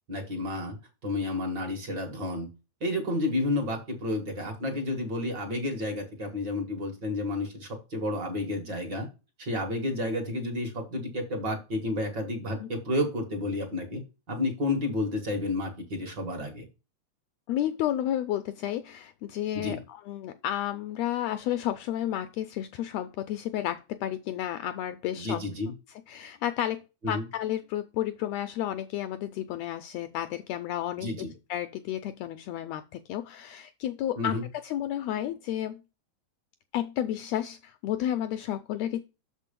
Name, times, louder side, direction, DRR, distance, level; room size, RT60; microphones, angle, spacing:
voice 1, 0.1-0.8 1.0-2.5 2.8-9.1 9.4-14.0 14.3-16.7 19.6-19.8 25.1-25.7 27.0-27.2 31.0-31.3 34.2-34.4, left 2 dB, 45° right, 1.8 m, -31 dB
voice 2, 17.5-25.4 26.1-34.4 34.6-35.8 36.7-39.0, left 12 dB, 80° left, 1.5 m, -32 dB
6.6 x 4.5 x 5.1 m
omnidirectional pair, 3.4 m